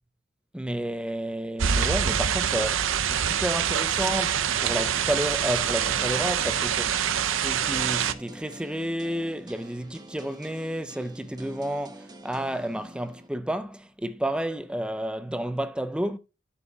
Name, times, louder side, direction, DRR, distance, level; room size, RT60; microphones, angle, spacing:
voice 1, 0.5-16.2, right 1 dB, 5° right, 0.5 m, -31 dB
sound 1, 1.6-8.1, right 8 dB, 70° right, 0.6 m, -25 dB
sound 2, 5.7-13.3, right 1 dB, 20° right, 1.2 m, -46 dB
10.5 x 7.0 x 2.3 m
head